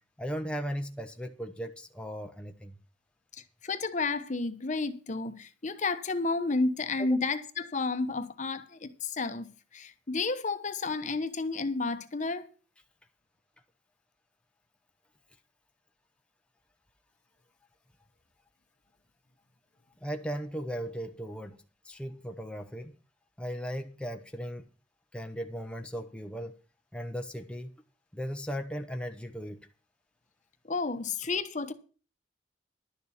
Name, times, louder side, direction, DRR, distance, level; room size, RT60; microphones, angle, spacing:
voice 1, 0.2-2.8 7.0-7.1 20.0-21.6 21.8-23.0 23.4-24.7 25.1-26.6 26.9-27.7 28.1-29.6, equal, 5° left, 0.8 m, -37 dB
voice 2, 3.6-12.5 30.6-31.7, left 3 dB, 45° left, 1.0 m, -31 dB
11.5 x 7.0 x 7.2 m
head